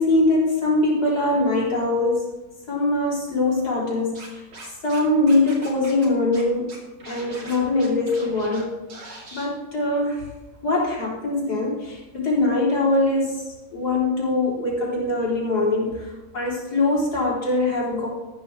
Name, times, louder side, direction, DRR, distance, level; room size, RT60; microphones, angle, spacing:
voice 1, 0.0-2.3 2.7-4.4 4.8-6.7 7.0-8.7 9.3-10.2 10.6-13.4 13.7-18.1, left 2 dB, 65° left, -4 dB, 4.2 m, -22 dB
Scratching (performance technique), 4.1-5.0 5.3-6.1 6.3-6.4 6.7-8.6 8.9-9.5, right 2 dB, 90° right, 3.1 m, -41 dB
13.5 x 12.0 x 3.4 m, 1.1 s
omnidirectional pair, 1.8 m